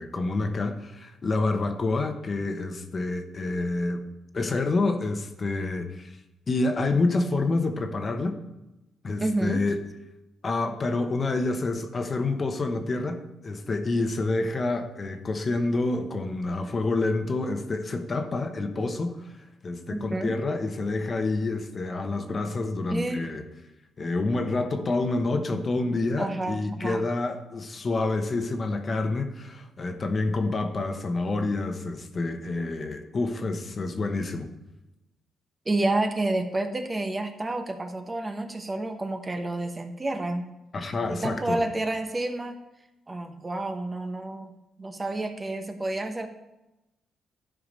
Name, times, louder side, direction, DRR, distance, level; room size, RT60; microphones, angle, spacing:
voice 1, 0.0-4.0 4.3-6.2 6.5-8.4 9.0-9.8 10.4-19.3 19.6-23.4 24.0-34.5 40.7-41.6, left 3 dB, 35° left, 6 dB, 1.1 m, -28 dB
voice 2, 9.2-9.6 19.9-20.4 22.9-23.3 26.2-27.0 35.7-40.5 41.1-42.6 43.1-44.5 44.8-46.3, right 2 dB, 20° right, 7 dB, 0.9 m, -29 dB
11.5 x 4.9 x 5.3 m, 0.98 s
cardioid pair, 90°, 0 cm